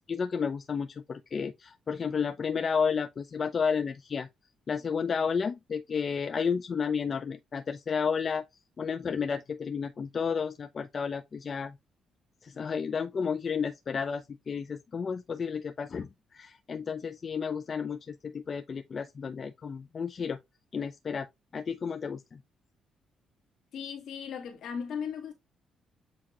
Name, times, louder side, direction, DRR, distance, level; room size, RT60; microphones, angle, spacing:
voice 1, 0.0-4.3 4.7-8.4 8.8-11.8 12.4-20.4 20.7-21.3 21.5-22.4, left 6 dB, 45° left, 0.4 m, -32 dB
voice 2, 23.7-25.3, left 7 dB, 70° left, 1.7 m, -37 dB
7.7 x 2.8 x 2.4 m
cardioid pair, 90°, 0 cm